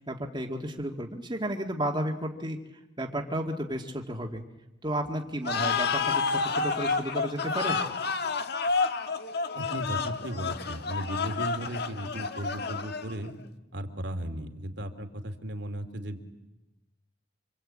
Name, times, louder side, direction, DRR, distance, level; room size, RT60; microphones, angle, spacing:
voice 1, 0.0-2.6 3.0-4.4 4.8-7.8, right 1 dB, 25° right, 2 dB, 2.0 m, -32 dB
sound 1, 5.4-13.3, left 4 dB, 55° left, 1.6 m, -30 dB
voice 2, 9.5-13.3 13.7-16.2, right 1 dB, 60° right, 6 dB, 2.6 m, -36 dB
26.0 x 26.0 x 8.7 m, 0.97 s
head